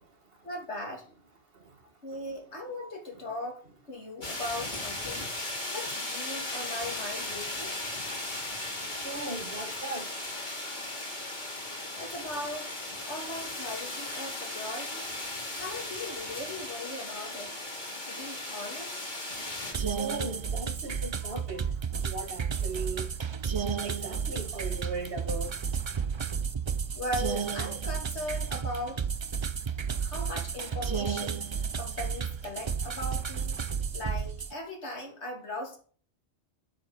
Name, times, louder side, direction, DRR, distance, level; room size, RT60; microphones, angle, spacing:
voice 1, 0.4-1.1 2.0-3.6 3.9-5.3 5.7-7.7 12.0-12.7 13.0-15.0 15.6-17.5 18.0-19.0 21.2-21.4 26.9-29.0 30.0-33.5 33.9-35.8, left 1 dB, 80° left, 3.1 m, -38 dB
sound 1, 4.2-19.7, left 2 dB, 45° left, 2.7 m, -37 dB
voice 2, 8.9-10.1 20.0-21.6 22.0-23.1 23.8-25.6, right 2 dB, 60° right, 1.9 m, -38 dB
sound 2, 19.7-34.5, right 6 dB, 40° right, 0.4 m, -32 dB
9.0 x 6.6 x 6.7 m
omnidirectional pair, 1.1 m